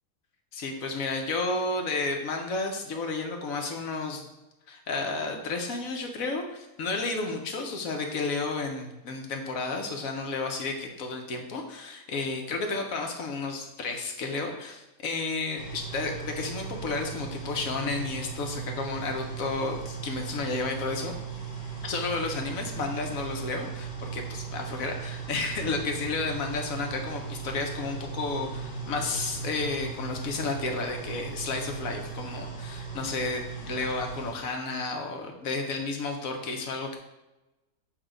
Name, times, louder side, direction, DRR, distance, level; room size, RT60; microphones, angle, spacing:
voice 1, 0.5-4.3 4.7-21.2 21.8-37.0, left 3 dB, 65° left, 3 dB, 1.1 m, -32 dB
sound 1, 15.6-34.3, right 6 dB, 30° left, 1.1 m, -38 dB
7.4 x 2.8 x 4.9 m, 0.99 s
omnidirectional pair, 1.7 m